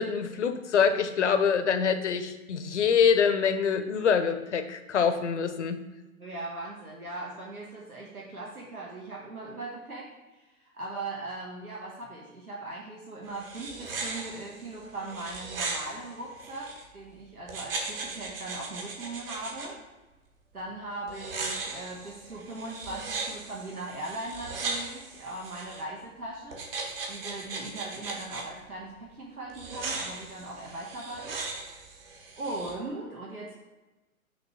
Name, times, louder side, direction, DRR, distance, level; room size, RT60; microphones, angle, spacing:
voice 1, 0.0-5.8, left 6 dB, 55° left, 10 dB, 0.7 m, -25 dB
voice 2, 6.2-10.1 10.6-19.8 20.5-26.6 27.1-31.4 32.3-33.6, right 2 dB, 85° right, -3 dB, 1.3 m, -39 dB
sound 1, 13.3-16.8 17.5-19.7 21.1-25.8 26.5-28.4 29.5-32.7, right 3 dB, 40° right, 1.3 m, -38 dB
6.4 x 3.1 x 5.8 m, 1.1 s
figure-of-eight pair, 125°, 43 cm